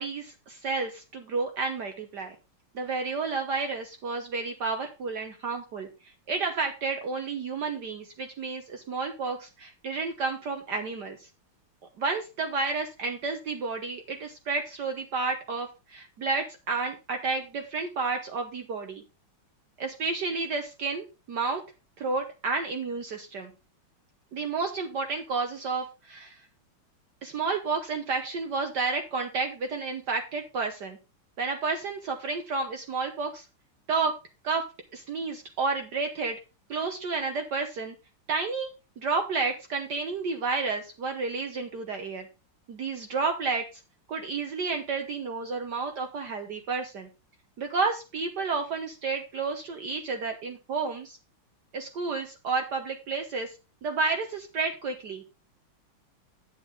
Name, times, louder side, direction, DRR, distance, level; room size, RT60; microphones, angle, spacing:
voice 1, 0.0-2.4 2.7-11.3 12.0-19.0 19.8-21.6 22.0-23.5 24.3-26.5 27.2-31.0 31.4-33.5 33.9-34.2 34.4-34.7 34.9-36.4 36.7-37.9 38.3-38.7 39.0-42.3 42.7-43.8 44.1-47.1 47.6-51.2 51.7-55.2, right 4 dB, 60° right, 5 dB, 1.4 m, -31 dB
8.4 x 8.2 x 3.8 m, 0.29 s
omnidirectional pair, 2.4 m